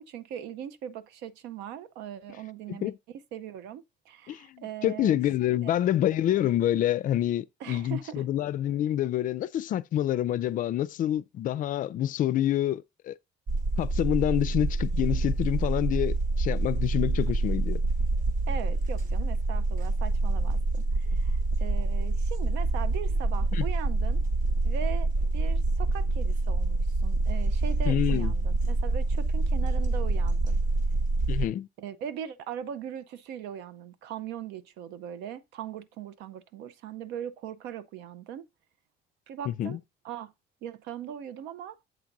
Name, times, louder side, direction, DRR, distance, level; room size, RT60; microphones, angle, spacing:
voice 1, 0.0-5.2 5.5-5.7 7.6-8.2 18.5-24.2 24.6-25.1 25.3-30.6 31.8-38.4 39.3-39.8 40.0-40.3 40.6-41.8, right 9 dB, 90° right, 0.6 m, -40 dB
voice 2, 4.3-13.1 13.8-17.8 23.5-23.6 27.9-28.3 31.3-31.7 39.5-39.8, left 12 dB, 50° left, 0.4 m, -27 dB
sound 1, 13.5-31.5, right 2 dB, 50° right, 0.8 m, -26 dB
7.8 x 2.6 x 5.8 m
cardioid pair, 110°, 17 cm